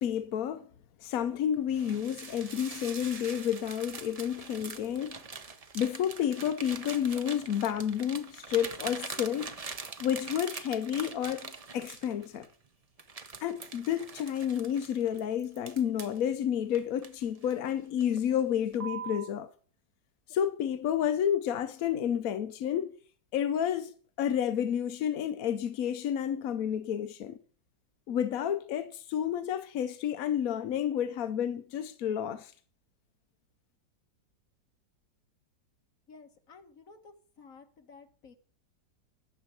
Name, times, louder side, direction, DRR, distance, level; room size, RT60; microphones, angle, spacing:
voice 1, 0.0-0.7 1.0-5.2 5.7-9.5 10.0-12.5 13.4-19.5 20.3-22.9 23.3-27.4 28.1-32.5, left 9 dB, 65° left, 0.9 m, -30 dB
sound 1, 1.7-12.5 13.0-16.2 16.7-17.7 18.0-18.3 18.7-19.3, right 4 dB, 75° right, 0.3 m, -43 dB
voice 2, 36.1-38.3, left 4 dB, 45° left, 1.9 m, -54 dB
12.0 x 6.8 x 7.9 m
omnidirectional pair, 2.1 m